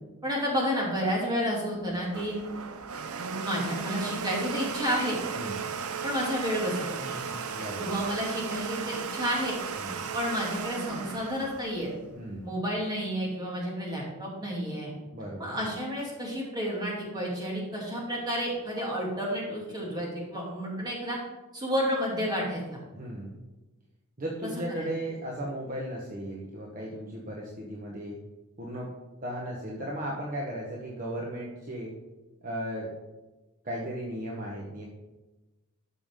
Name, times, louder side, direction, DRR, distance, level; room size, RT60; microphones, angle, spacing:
voice 1, 0.2-2.4 3.4-5.2 6.0-7.3 7.8-9.6 10.1-11.9 12.4-14.9 15.4-21.2 21.5-22.8 24.8-24.9, equal, 20° right, -3 dB, 2.5 m, -31 dB
Domestic sounds home sounds, 1.8-12.5, right 6 dB, 80° right, 0.6 m, -36 dB
voice 2, 5.3-5.7 7.5-8.0 9.8-10.1 12.1-12.5 15.1-15.6 22.9-23.4 24.2-28.2 28.6-28.9 29.2-31.9 32.4-32.9 33.6-34.8, right 1 dB, 40° right, -3 dB, 1.2 m, -36 dB
12.5 x 6.0 x 3.7 m, 1.1 s
head